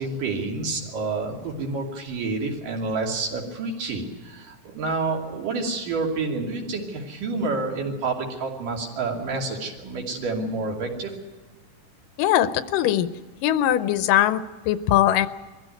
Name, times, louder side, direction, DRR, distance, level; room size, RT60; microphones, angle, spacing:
voice 1, 0.0-11.1, right 3 dB, 80° right, 0 dB, 4.3 m, -29 dB
voice 2, 12.2-13.1 13.4-15.3, left 12 dB, 90° left, 13 dB, 2.5 m, -21 dB
22.5 x 15.0 x 9.2 m, 1.2 s
omnidirectional pair, 3.8 m